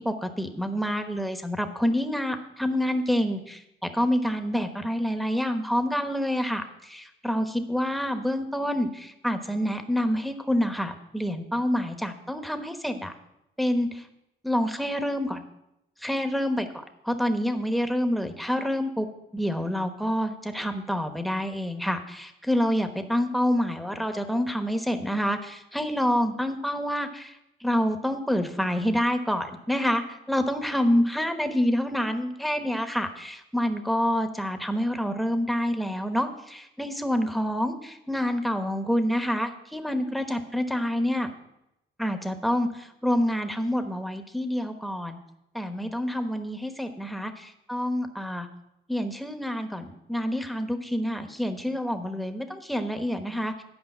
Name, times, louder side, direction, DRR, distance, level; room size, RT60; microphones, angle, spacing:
voice 1, 0.0-13.1 13.6-14.0 14.4-15.4 16.0-19.1 19.3-30.0 30.3-41.3 42.0-45.2 45.5-48.5 48.9-53.6, equal, ahead, 6 dB, 1.1 m, -27 dB
10.5 x 5.2 x 7.2 m, 0.87 s
cardioid pair, 90°, 20 cm